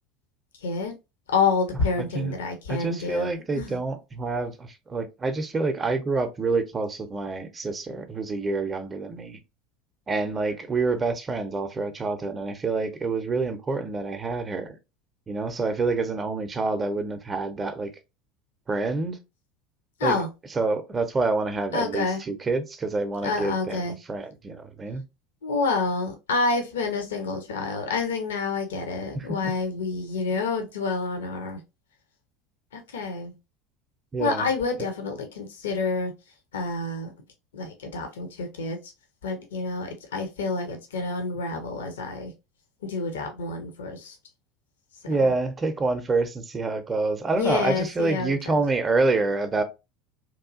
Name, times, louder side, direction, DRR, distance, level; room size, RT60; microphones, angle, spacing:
voice 1, 0.6-1.0 1.3-3.8 20.0-20.3 21.7-22.2 23.2-24.0 25.4-31.6 32.7-33.3 34.2-36.1 36.5-37.1 37.5-38.8 39.2-42.3 42.8-44.2 47.4-48.5, left 4 dB, 70° left, 0.5 m, -28 dB
voice 2, 2.7-9.4 10.1-14.8 15.3-17.9 18.7-19.2 20.0-20.2 20.6-25.0 29.1-29.3 34.1-34.5 45.1-49.6, right 3 dB, 20° right, 0.5 m, -27 dB
2.9 x 2.3 x 2.5 m
figure-of-eight pair, 70°, 0 cm